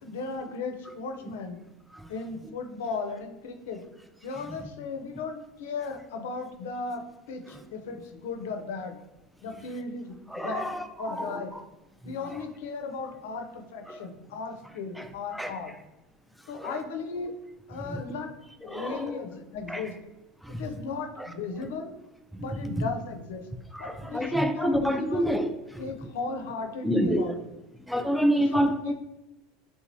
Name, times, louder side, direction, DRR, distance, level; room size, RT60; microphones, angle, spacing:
voice 1, 0.0-1.6 2.1-3.8 4.2-9.0 9.4-10.7 11.0-11.5 12.0-15.7 16.5-17.3 17.7-18.3 18.6-19.9 20.6-21.9 22.4-23.4 23.8-25.2 25.8-27.3 28.3-28.9, left 4 dB, 85° left, 4 dB, 0.5 m, -36 dB
voice 2, 10.3-11.4 12.0-12.4 13.9-14.0 15.0-15.1 15.3-15.5 16.6-16.8 17.9-18.0 18.6-19.2 19.7-19.9 20.4-20.6 21.2-21.3 22.3-22.8 23.7-25.8 26.8-27.3 27.9-28.9, equal, ahead, 7 dB, 0.3 m, -28 dB
3.5 x 3.0 x 2.7 m, 0.96 s
supercardioid pair, 105°, 0 cm